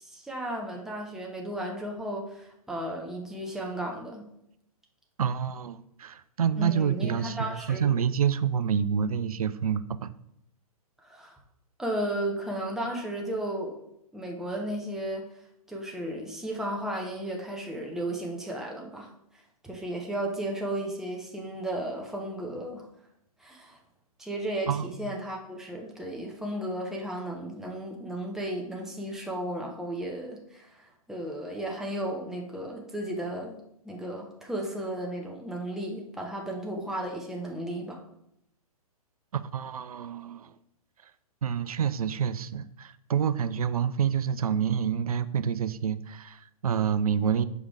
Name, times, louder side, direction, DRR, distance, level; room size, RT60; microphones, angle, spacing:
voice 1, 0.0-4.2 6.6-7.9 11.0-11.4 11.8-13.8 14.1-15.3 15.7-19.1 19.6-22.9 23.4-23.8 24.2-38.0, right 1 dB, ahead, 0 dB, 1.0 m, -34 dB
voice 2, 5.2-10.1 24.7-25.0 39.3-40.5 41.4-47.4, right 8 dB, 70° right, 14 dB, 0.5 m, -28 dB
5.2 x 5.0 x 4.9 m, 0.79 s
figure-of-eight pair, 120°, 19 cm